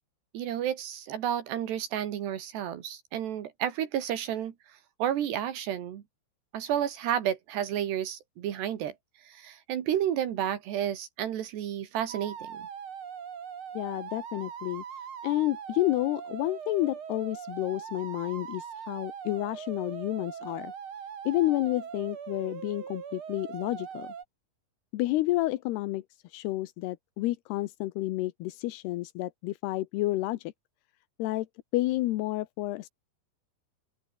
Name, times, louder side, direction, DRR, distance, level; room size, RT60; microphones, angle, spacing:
voice 1, 0.3-6.0 6.5-8.9 9.2-12.7, right 10 dB, 80° right, 4.2 m, -31 dB
sound 1, 12.1-24.2, right 7 dB, 45° right, 1.9 m, -41 dB
voice 2, 13.7-14.8 15.2-20.7 21.2-24.1 24.9-30.5 31.2-31.5 31.7-32.9, left 17 dB, 80° left, 2.9 m, -30 dB
open air
omnidirectional pair, 4.8 m